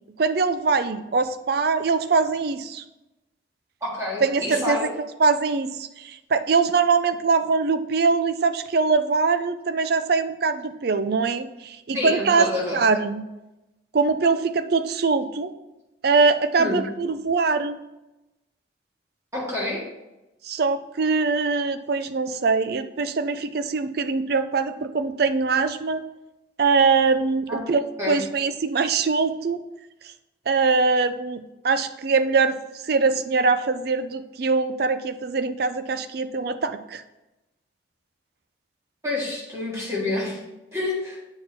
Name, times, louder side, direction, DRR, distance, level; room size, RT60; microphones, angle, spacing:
voice 1, 0.2-2.8 4.2-12.5 12.7-13.2 13.9-15.5 16.0-17.8 20.4-26.0 26.6-29.6 30.5-32.6 32.8-37.0, right 4 dB, 55° right, 11 dB, 0.4 m, -22 dB
voice 2, 3.8-4.9 11.9-12.8 16.6-16.9 19.3-19.8 27.5-27.7 28.0-28.2 39.0-40.4 40.7-41.2, left 2 dB, 15° right, -6 dB, 1.8 m, -28 dB
8.5 x 4.5 x 4.4 m, 0.98 s
head